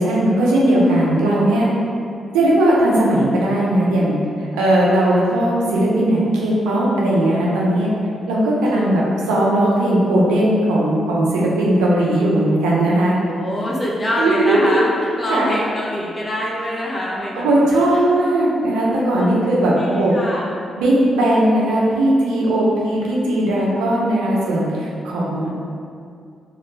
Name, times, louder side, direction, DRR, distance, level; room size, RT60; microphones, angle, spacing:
voice 1, 0.0-1.7 2.3-4.2 4.5-7.9 8.3-13.2 14.2-14.8 15.3-15.5 17.3-20.1 20.7-25.5, right 1 dB, 85° right, -5 dB, 0.4 m, -18 dB
voice 2, 5.0-5.3 13.3-18.1 19.2-19.3 19.7-20.7, equal, 35° left, -4 dB, 0.6 m, -25 dB
2.3 x 2.0 x 3.1 m, 2.4 s
supercardioid pair, 50°, 0 cm